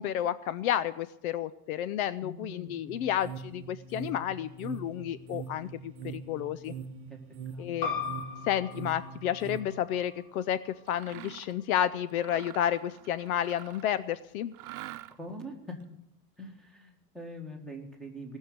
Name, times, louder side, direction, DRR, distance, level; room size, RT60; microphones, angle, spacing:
voice 1, 0.0-6.7 7.6-8.0 8.5-14.5, left 10 dB, 60° left, 16 dB, 0.7 m, -31 dB
voice 2, 2.2-2.9 7.1-7.2 7.5-8.1 15.2-15.8 16.4-18.4, equal, ahead, 2 dB, 1.8 m, -43 dB
sound 1, 2.9-9.6, right 6 dB, 30° right, 1.0 m, -43 dB
sound 2, 7.8-13.0, left 5 dB, 40° left, 4.9 m, -41 dB
Mechanisms, 10.9-11.6 12.1-14.0 14.5-15.4, right 15 dB, 65° right, 0.9 m, -46 dB
18.5 x 6.5 x 9.4 m, 0.84 s
supercardioid pair, 150°, 48 cm